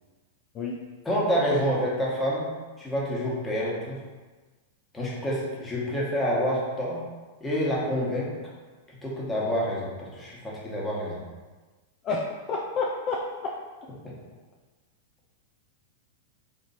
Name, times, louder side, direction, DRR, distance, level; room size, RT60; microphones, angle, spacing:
voice 1, 1.0-2.5 2.8-4.0 4.9-7.0 7.4-8.3 9.0-11.2 14.0-14.1, equal, 10° left, -6 dB, 1.2 m, -28 dB
voice 2, 12.0-13.5, left 3 dB, 35° left, -2 dB, 0.4 m, -29 dB
3.9 x 2.9 x 2.7 m, 1.3 s
hypercardioid pair, 100°, 0 cm